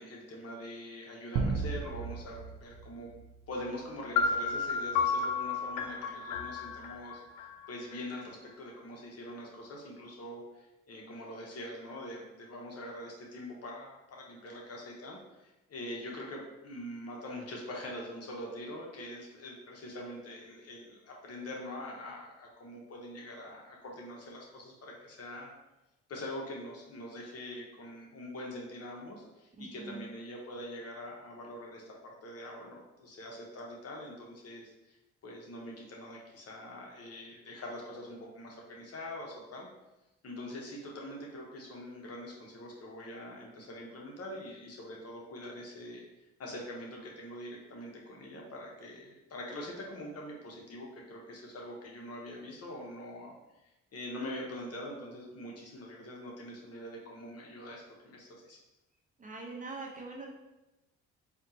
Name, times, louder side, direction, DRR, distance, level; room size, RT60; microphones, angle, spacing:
voice 1, 0.0-3.1 3.5-7.2 7.7-25.5 26.1-35.0 35.2-39.7 40.2-46.0 46.4-58.6, left 1 dB, 55° left, -1 dB, 1.0 m, -44 dB
sound 1, 1.3-3.9, right 4 dB, 80° right, 0.6 m, -35 dB
sound 2, 4.2-8.0, left 5 dB, 90° left, 0.5 m, -32 dB
voice 2, 29.6-30.1 59.2-60.3, right 3 dB, 25° right, -1 dB, 0.8 m, -43 dB
4.2 x 2.8 x 2.7 m, 0.99 s
cardioid pair, 90°, 30 cm